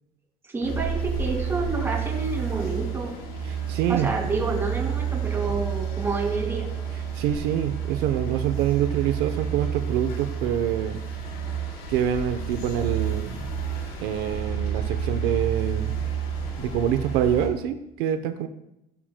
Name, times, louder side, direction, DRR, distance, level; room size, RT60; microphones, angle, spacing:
voice 1, 0.5-3.1 3.9-6.6, right 3 dB, 15° right, 0 dB, 2.1 m, -29 dB
sound 1, 0.6-17.5, right 7 dB, 80° left, 3.7 m, -30 dB
voice 2, 3.5-4.1 7.1-11.0 11.9-13.5 14.0-15.9 16.6-18.5, right 10 dB, 80° right, 8 dB, 0.7 m, -26 dB
16.5 x 10.0 x 2.2 m, 0.85 s
cardioid pair, 160°, 16 cm